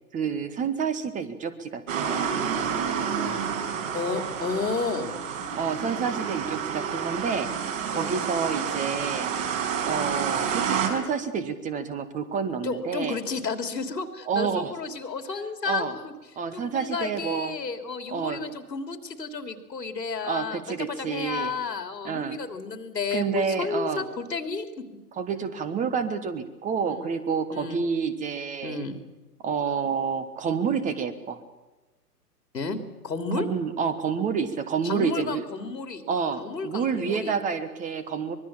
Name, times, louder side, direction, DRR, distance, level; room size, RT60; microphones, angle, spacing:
voice 1, 0.1-2.4 5.5-9.3 9.8-13.2 14.3-14.7 15.6-16.0 16.4-17.5 18.1-18.4 20.2-21.5 22.0-22.4 23.1-24.1 25.2-28.8 29.4-31.4 33.4-35.4 36.1-38.4, right 6 dB, 15° right, 12 dB, 1.2 m, -29 dB
sound 1, 1.9-10.9, right 7 dB, 50° right, 5.3 m, -29 dB
voice 2, 3.9-5.1 7.9-8.2 12.6-16.1 16.5-20.6 20.9-24.7 26.8-27.1 27.5-27.8 28.6-29.0 32.5-33.5 34.8-36.0 36.4-37.4, left 4 dB, 85° left, 7 dB, 3.2 m, -32 dB
24.5 x 21.0 x 7.3 m, 1.2 s
hypercardioid pair, 130°, 49 cm